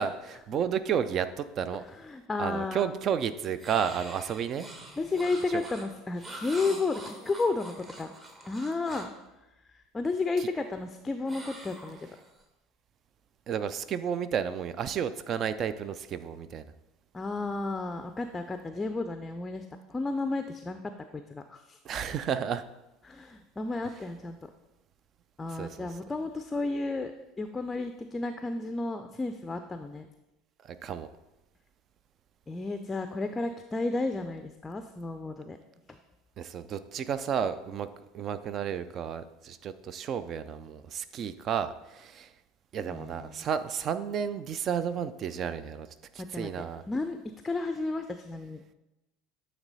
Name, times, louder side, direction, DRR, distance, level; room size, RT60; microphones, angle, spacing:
voice 1, 0.0-1.8 2.4-4.7 5.5-5.6 13.5-16.7 21.8-22.6 25.5-25.9 30.6-31.1 36.4-37.9 38.1-42.3 42.7-45.9 46.1-46.8, right 8 dB, 40° right, 13 dB, 0.4 m, -32 dB
voice 2, 2.0-3.0 5.0-8.1 8.5-9.1 9.7-12.1 17.1-20.8 21.1-21.8 23.0-24.4 25.4-27.1 27.4-30.1 32.5-35.6 42.9-43.5 46.2-48.7, left 3 dB, 20° left, 8 dB, 0.4 m, -32 dB
sound 1, 3.6-9.2 11.3-12.4, right 1 dB, 25° right, 1.2 m, -45 dB
8.8 x 3.3 x 4.0 m, 0.99 s
figure-of-eight pair, 70°, 0 cm